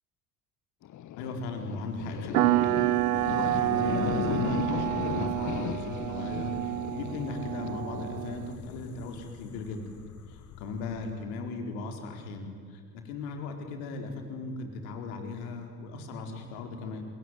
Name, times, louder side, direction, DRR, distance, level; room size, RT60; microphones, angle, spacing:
sound 1, 0.8-11.2, left 11 dB, 40° left, 1.3 m, -37 dB
voice 1, 1.2-2.8 3.1-9.8 10.3-12.5 13.0-17.0, left 4 dB, 65° left, 5 dB, 4.6 m, -38 dB
sound 2, 2.3-8.5, right 17 dB, 70° right, 0.8 m, -29 dB
28.5 x 22.0 x 9.4 m, 2.1 s
figure-of-eight pair, 65°, 47 cm